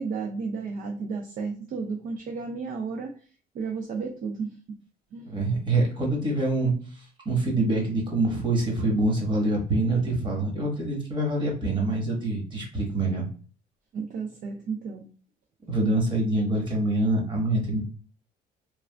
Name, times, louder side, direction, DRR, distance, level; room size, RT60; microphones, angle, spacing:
voice 1, 0.0-3.1 3.5-4.5 5.1-5.3 13.9-15.1, right 5 dB, 50° right, 2 dB, 0.5 m, -32 dB
voice 2, 5.2-6.7 7.2-13.3 15.7-17.8, right 2 dB, 30° right, -1 dB, 1.3 m, -25 dB
3.2 x 2.4 x 2.3 m, 0.41 s
cardioid pair, 110°, 17 cm